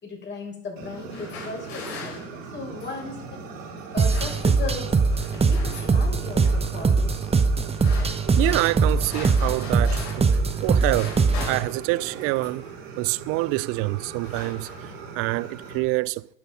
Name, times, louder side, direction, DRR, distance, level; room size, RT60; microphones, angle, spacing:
voice 1, 0.0-4.9 5.3-7.4, left 3 dB, 25° left, 6.4 m, -37 dB
Fire, 0.8-15.8, right 5 dB, 65° right, 3.9 m, -40 dB
sound 1, 0.9-3.1 3.8-4.8 5.1-6.0 6.4-6.8 7.5-10.4 10.6-12.7 13.5-13.7 14.0-15.1, left 4 dB, 65° left, 5.4 m, -41 dB
sound 2, 4.0-11.6, right 4 dB, 15° right, 1.1 m, -22 dB
voice 2, 8.4-11.2 11.5-12.7 13.0-16.3, right 21 dB, 35° right, 0.4 m, -26 dB
12.0 x 11.0 x 5.5 m
hypercardioid pair, 85°, 40 cm